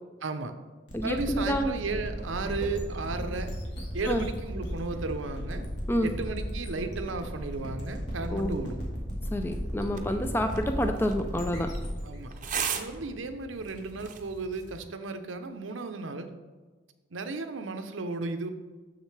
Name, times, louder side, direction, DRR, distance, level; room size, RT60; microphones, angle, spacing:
voice 1, 0.2-0.5 1.0-3.5 3.9-5.6 6.0-8.8 12.0-12.3 12.7-16.3 17.1-18.5, right 3 dB, 85° right, 8 dB, 0.7 m, -34 dB
sound 1, 0.9-13.5, equal, 60° left, 1.6 m, -35 dB
voice 2, 0.9-1.7 4.1-4.3 5.9-6.1 8.3-8.6 9.3-11.7, equal, 10° left, 6 dB, 0.3 m, -28 dB
sound 2, 9.8-14.8, right 7 dB, 40° right, 0.6 m, -39 dB
7.3 x 6.6 x 3.3 m, 1.3 s
head